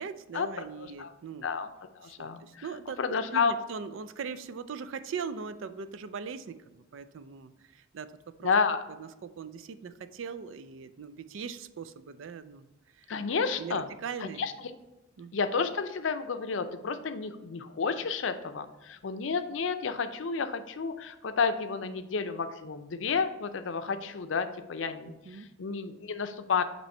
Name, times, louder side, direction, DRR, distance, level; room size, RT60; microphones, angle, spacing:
voice 1, 0.0-1.5 2.0-3.0 3.3-8.5 9.0-13.1 13.6-14.7 15.2-15.4 25.0-25.5, right 6 dB, 75° right, 12 dB, 0.4 m, -40 dB
voice 2, 0.8-1.1 1.4-1.7 2.0-2.7 3.0-3.5 8.4-8.8 13.1-13.9 14.4-14.7 15.3-26.6, left 5 dB, 70° left, 9 dB, 0.5 m, -31 dB
8.0 x 3.0 x 4.3 m, 0.99 s
head